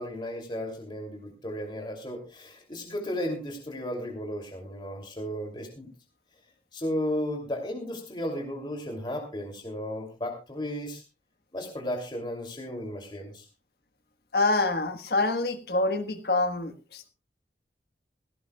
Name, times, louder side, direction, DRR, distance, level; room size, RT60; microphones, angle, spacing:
voice 1, 0.0-5.9 6.7-11.0 11.5-13.4, equal, 25° left, 2 dB, 2.9 m, -34 dB
voice 2, 14.3-17.1, left 2 dB, 60° left, 9 dB, 1.5 m, -26 dB
17.5 x 17.0 x 2.4 m, 0.30 s
head